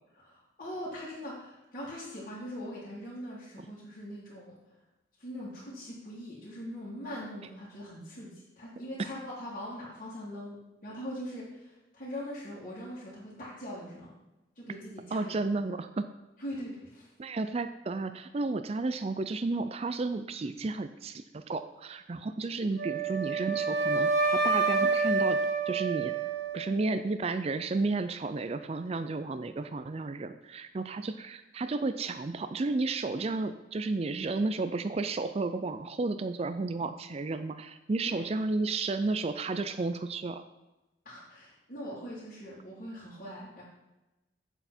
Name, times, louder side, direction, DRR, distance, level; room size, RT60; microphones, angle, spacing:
voice 1, 0.2-4.6 5.2-14.1 14.5-15.6 16.4-17.1 38.0-38.3 41.0-43.6, equal, 50° left, -9 dB, 3.0 m, -42 dB
voice 2, 15.1-16.1 17.2-25.4 25.7-26.1 26.5-40.4, right 3 dB, 35° right, 10 dB, 0.4 m, -32 dB
Wind instrument woodwind instrument, 22.8-26.9, right 4 dB, 85° right, 1.6 m, -28 dB
8.2 x 7.8 x 4.3 m, 1.0 s
head